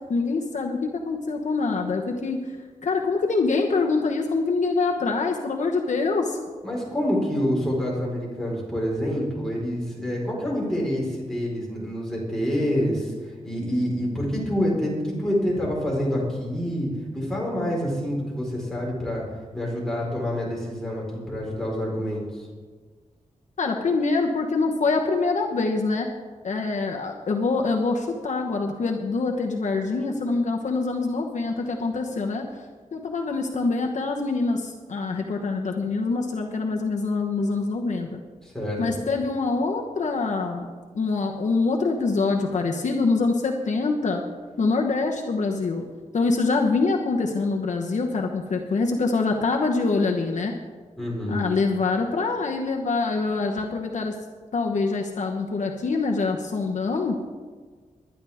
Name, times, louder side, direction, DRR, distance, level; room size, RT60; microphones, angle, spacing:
voice 1, 0.1-2.4 2.8-6.4 23.6-26.1 26.4-32.6 32.9-38.2 38.8-40.7 40.9-44.2 44.6-45.8 46.1-50.5 51.3-54.1 54.5-57.2, left 3 dB, 60° left, 1 dB, 1.1 m, -25 dB
voice 2, 6.6-19.2 19.5-22.4 38.4-39.0 51.0-51.5, equal, 5° left, -5 dB, 4.4 m, -27 dB
21.0 x 10.5 x 3.6 m, 1.5 s
wide cardioid pair, 160°, 14 cm